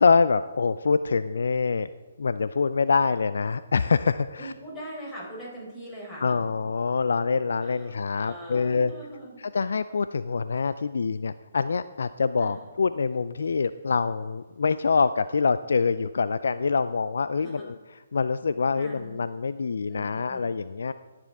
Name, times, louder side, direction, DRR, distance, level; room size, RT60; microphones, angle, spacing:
voice 1, 0.0-1.9 2.2-4.5 6.2-8.9 9.5-17.8 18.1-20.9, left 5 dB, 70° left, 13 dB, 0.4 m, -25 dB
voice 2, 4.4-6.3 7.6-9.4 12.4-12.6 17.3-17.7 18.7-19.2 19.9-20.5, right 1 dB, 20° left, -4 dB, 4.6 m, -42 dB
20.5 x 7.5 x 3.6 m, 1.3 s
figure-of-eight pair, 135°, 0 cm